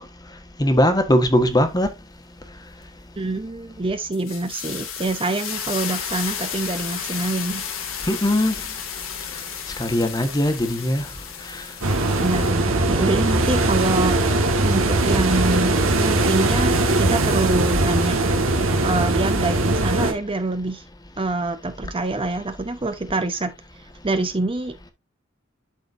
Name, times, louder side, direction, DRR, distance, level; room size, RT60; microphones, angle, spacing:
voice 1, 0.6-1.9 8.1-8.6 9.8-11.0, left 1 dB, 20° left, 1.4 m, -19 dB
voice 2, 3.2-7.6 12.2-18.2 18.8-20.8 21.2-23.5 24.0-24.9, right 2 dB, 25° right, 0.7 m, -25 dB
sound 1, 4.1-12.5, left 8 dB, 85° left, 1.9 m, -33 dB
sound 2, 11.8-20.1, right 2 dB, 80° right, 1.7 m, -20 dB
12.0 x 4.3 x 2.6 m
head